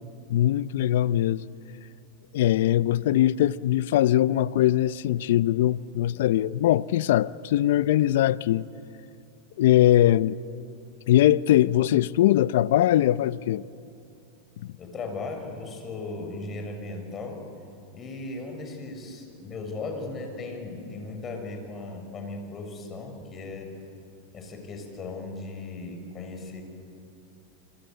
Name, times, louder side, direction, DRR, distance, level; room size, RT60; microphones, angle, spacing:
voice 1, 0.3-1.4 2.3-8.6 9.6-10.4 11.1-13.6 14.6-14.7, left 13 dB, 70° left, 0.6 m, -21 dB
voice 2, 14.8-17.4 17.9-23.7 24.3-26.6, left 3 dB, 30° left, 6.9 m, -37 dB
27.5 x 26.0 x 8.1 m
hypercardioid pair, 115°, 0 cm